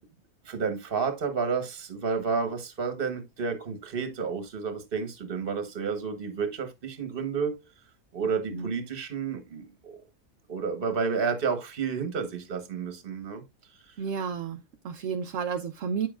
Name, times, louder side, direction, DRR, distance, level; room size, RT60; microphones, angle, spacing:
voice 1, 0.4-7.6 8.1-10.0 10.5-13.4, right 5 dB, 45° right, 1.3 m, -31 dB
voice 2, 14.0-16.1, right 6 dB, 65° right, 0.8 m, -32 dB
8.3 x 7.0 x 2.4 m
omnidirectional pair, 1.4 m